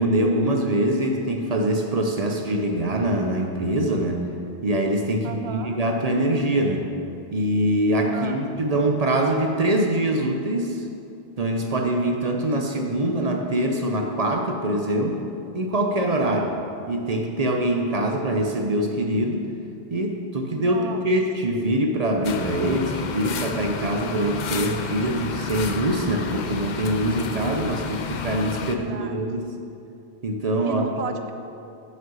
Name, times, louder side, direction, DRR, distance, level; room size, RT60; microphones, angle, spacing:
voice 1, 0.0-4.2 4.6-6.9 7.3-10.8 11.4-15.2 15.5-16.5 16.9-19.5 19.9-29.5 30.2-30.9, right 1 dB, 40° right, 2 dB, 0.6 m, -24 dB
voice 2, 5.2-5.8 8.1-8.4 16.2-16.6 20.6-21.0 28.6-29.3 30.6-31.3, right 6 dB, 70° right, 7 dB, 0.8 m, -34 dB
sound 1, 22.2-28.8, left 6 dB, 55° left, 0.5 m, -31 dB
7.6 x 5.7 x 6.2 m, 2.6 s
omnidirectional pair, 1.1 m